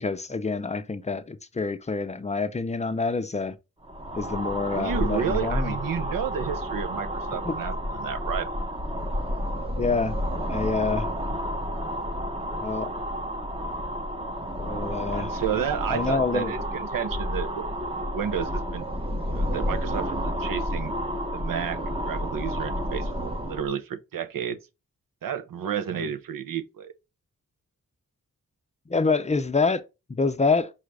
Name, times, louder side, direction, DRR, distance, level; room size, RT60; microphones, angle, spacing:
voice 1, 0.0-3.5 4.1-5.8 7.5-7.6 9.8-10.2 10.5-11.1 12.6-12.9 14.6-15.3 15.9-16.7 28.9-29.8 30.1-30.7, left 4 dB, 20° left, 0.5 m, -26 dB
sound 1, 3.8-23.7, equal, 15° right, 0.7 m, -30 dB
voice 2, 4.7-8.5 15.1-17.7 18.1-18.9 19.3-20.9 21.3-24.6 25.2-26.9, right 8 dB, 85° right, 0.7 m, -31 dB
5.5 x 2.4 x 3.2 m
wide cardioid pair, 95°, 33 cm